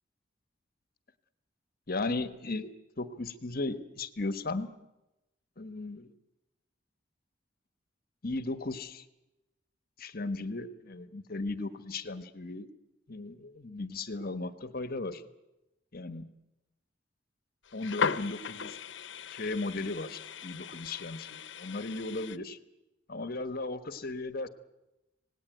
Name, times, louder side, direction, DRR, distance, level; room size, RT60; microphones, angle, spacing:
voice 1, 1.9-2.7 3.0-4.7 5.6-6.1 8.2-9.0 10.0-12.7 13.1-15.2 15.9-16.3 17.7-18.8 19.3-22.6 23.1-24.5, left 2 dB, 55° left, 11 dB, 1.3 m, -36 dB
sound 1, 17.6-22.4, left 6 dB, 80° left, 0.8 m, -37 dB
26.0 x 18.5 x 9.2 m, 0.98 s
head